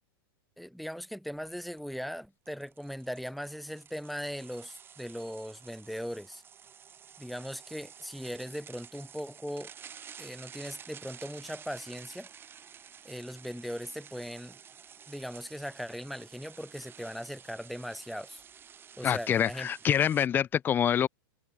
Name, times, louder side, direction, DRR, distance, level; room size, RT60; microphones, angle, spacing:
voice 1, 0.6-6.4 7.2-9.7 10.2-12.3 13.0-14.6 15.1-18.4 19.0-19.7, equal, ahead, 1.5 m, -39 dB
sound 1, 1.4-1.5 1.8-1.9 2.5-20.3, right 8 dB, 15° right, 1.7 m, -51 dB
voice 2, 19.0-21.1, left 9 dB, 15° left, 0.4 m, -26 dB
hypercardioid pair, 145°, 13 cm